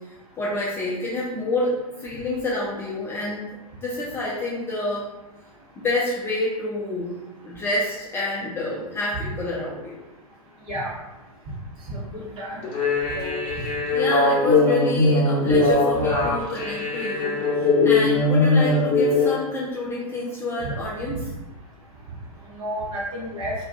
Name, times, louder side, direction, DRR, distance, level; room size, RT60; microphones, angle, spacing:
voice 1, 0.4-3.5 3.8-5.1 5.8-7.1 7.4-10.0 13.6-21.3, left 2 dB, 15° left, -6 dB, 0.4 m, -28 dB
voice 2, 11.9-12.6 13.1-13.4 20.6-20.7 22.5-23.5, equal, 25° right, -4 dB, 0.9 m, -31 dB
sound 1, 12.6-19.3, left 3 dB, 30° left, 1.0 m, -20 dB
2.3 x 2.3 x 3.5 m, 1.0 s
figure-of-eight pair, 105°, 19 cm